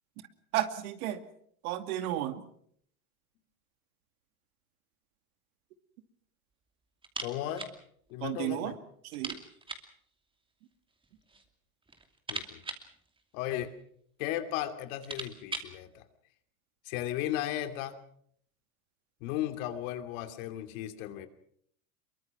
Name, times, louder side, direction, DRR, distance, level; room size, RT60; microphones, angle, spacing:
voice 1, 0.5-1.2 1.6-2.4 8.2-8.7 9.1-9.4, right 13 dB, 75° right, 9 dB, 2.5 m, -32 dB
sound 1, 7.0-7.8 8.1-8.2 8.5-8.6 9.1-10.0 10.9-11.5 11.8-13.8 14.5-14.6 14.8-15.8, right 3 dB, 10° right, 2.6 m, -41 dB
voice 2, 7.2-7.7 8.1-8.7 12.3-12.6 13.3-13.7 14.2-16.0 16.8-18.0 19.2-21.3, left 12 dB, 65° left, 8 dB, 2.8 m, -35 dB
23.5 x 23.0 x 6.1 m, 0.65 s
supercardioid pair, 125°, 43 cm